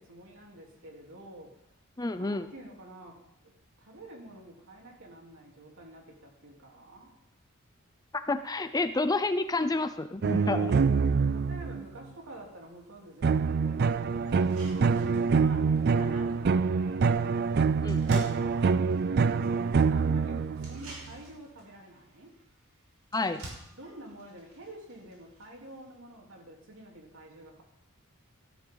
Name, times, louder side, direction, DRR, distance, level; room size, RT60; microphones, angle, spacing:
voice 1, 0.0-1.5 2.1-3.2 3.8-7.1 10.7-18.8 19.2-22.3 23.7-27.6, right 1 dB, 65° right, -1 dB, 3.7 m, -48 dB
voice 2, 2.0-2.5 8.1-10.7 17.8-18.2 23.1-23.4, left 2 dB, 15° left, 10 dB, 0.5 m, -30 dB
sound 1, 10.2-11.8 13.2-21.0, right 5 dB, 50° right, 0.4 m, -25 dB
sound 2, 14.3-25.9, right 1 dB, 90° right, 6.1 m, -50 dB
17.0 x 13.5 x 4.0 m, 0.80 s
head